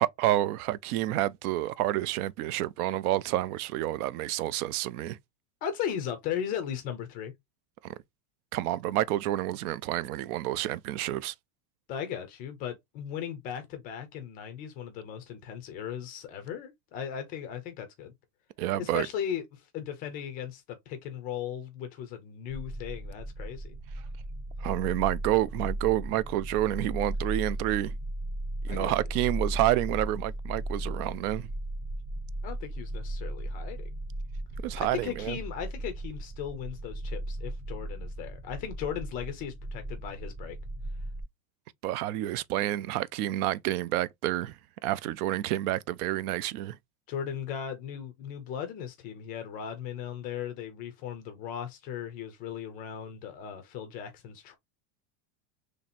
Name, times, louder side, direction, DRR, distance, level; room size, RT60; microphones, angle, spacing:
voice 1, 0.0-5.2 7.8-7.9 8.5-11.3 18.6-19.1 24.6-28.0 28.6-31.5 34.6-35.4 41.8-46.8, right 14 dB, 70° right, 0.5 m, -29 dB
voice 2, 5.6-7.3 11.9-18.1 18.7-23.8 28.7-28.9 32.4-33.9 34.8-40.6 47.1-54.6, left 9 dB, 20° left, 0.4 m, -37 dB
sound 1, 22.5-41.2, right 1 dB, 20° right, 0.9 m, -36 dB
3.2 x 2.8 x 4.1 m
supercardioid pair, 170°, 47 cm